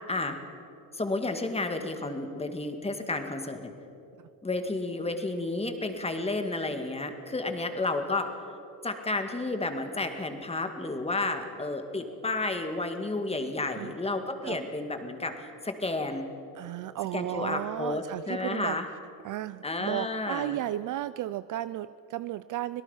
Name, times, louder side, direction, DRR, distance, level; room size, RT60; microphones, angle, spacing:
voice 1, 0.1-0.4 0.9-3.7 4.4-8.4 8.8-16.3 17.1-18.9 19.6-20.6, left 2 dB, 15° left, 6 dB, 2.1 m, -31 dB
voice 2, 16.5-18.8 19.2-22.8, right 14 dB, 45° right, 15 dB, 0.5 m, -34 dB
26.0 x 18.0 x 5.7 m, 2.7 s
supercardioid pair, 100°, 44 cm